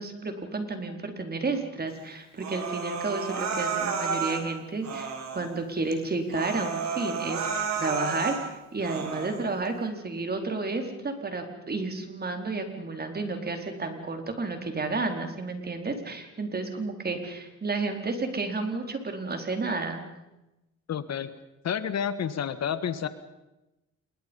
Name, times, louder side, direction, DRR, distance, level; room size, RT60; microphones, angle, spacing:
voice 1, 0.0-20.0, right 3 dB, 30° right, 5 dB, 4.5 m, -31 dB
Human voice, 2.4-4.4 4.8-5.5 5.9-6.0 6.3-8.4 8.8-9.4, right 5 dB, 65° right, 4.9 m, -31 dB
voice 2, 20.9-21.3 21.6-23.1, left 8 dB, 60° left, 13 dB, 1.6 m, -29 dB
27.5 x 22.5 x 5.5 m, 0.95 s
cardioid pair, 90°, 30 cm